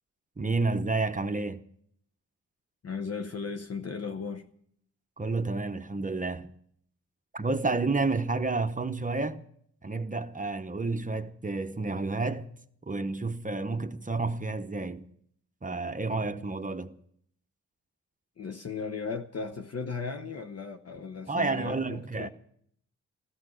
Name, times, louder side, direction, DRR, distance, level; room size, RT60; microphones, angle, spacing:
voice 1, 0.4-1.6 5.2-6.5 7.3-9.4 9.8-12.5 12.9-15.1 15.6-16.9 21.3-22.3, right 3 dB, 25° right, 0.9 m, -30 dB
voice 2, 2.8-4.5 18.4-22.3, left 5 dB, 50° left, 0.9 m, -36 dB
15.0 x 14.5 x 6.4 m
wide cardioid pair, 85°, 31 cm